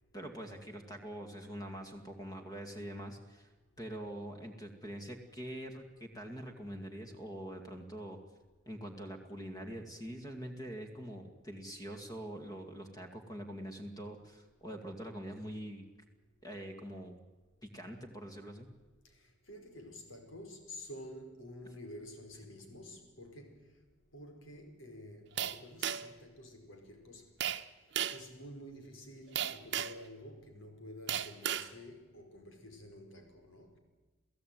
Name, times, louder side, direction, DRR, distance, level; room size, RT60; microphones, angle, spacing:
voice 1, 0.1-3.5 3.8-8.2 8.7-15.9 16.4-17.2 17.6-18.7, equal, 20° left, 2.3 m, -44 dB
voice 2, 19.0-23.8 24.1-27.3 28.1-33.8, left 1 dB, 90° left, 4.9 m, -50 dB
sound 1, 25.4-26.2 27.4-27.6 28.0-28.3 29.4-30.0 31.1-31.7, right 10 dB, 65° right, 0.9 m, -35 dB
29.0 x 16.0 x 9.3 m
head